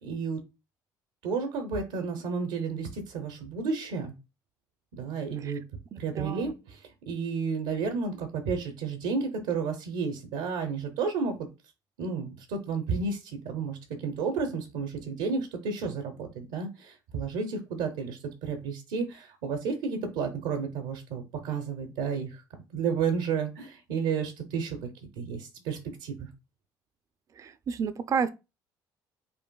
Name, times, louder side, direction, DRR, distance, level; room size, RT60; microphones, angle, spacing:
voice 1, 0.0-0.4 1.2-4.1 4.9-5.6 6.0-11.5 12.0-22.4 22.7-24.9 25.2-26.3, right 5 dB, 85° right, 0.7 m, -32 dB
voice 2, 5.9-6.5 27.4-28.3, right 6 dB, 40° right, 0.4 m, -31 dB
5.3 x 2.5 x 2.2 m
supercardioid pair, 75°, 9 cm